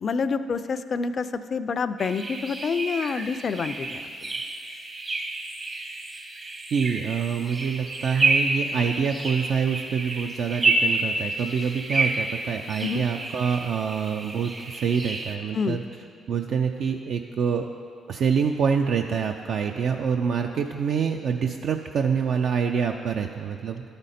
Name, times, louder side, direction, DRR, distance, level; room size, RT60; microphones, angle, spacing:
voice 1, 0.0-4.0 12.8-13.0 15.5-15.8, left 5 dB, 50° left, 12 dB, 0.3 m, -27 dB
sound 1, 2.0-15.4, right 3 dB, 40° right, 0.9 m, -29 dB
voice 2, 6.7-15.8 16.3-17.7 18.1-23.9, right 6 dB, 70° right, 4 dB, 0.3 m, -26 dB
12.0 x 5.1 x 4.2 m, 2.3 s
supercardioid pair, 65°, 0 cm